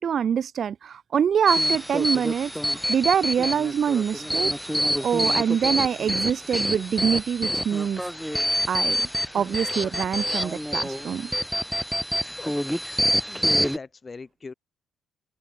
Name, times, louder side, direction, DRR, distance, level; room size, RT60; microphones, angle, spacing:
voice 1, 0.0-8.0 8.7-9.1 9.3-11.3, right 8 dB, 55° right, 0.4 m, -25 dB
sound 1, 1.5-13.8, equal, ahead, 0.6 m, -27 dB
voice 2, 13.2-14.5, left 4 dB, 30° left, 5.5 m, -42 dB
cardioid pair, 90°, 0 cm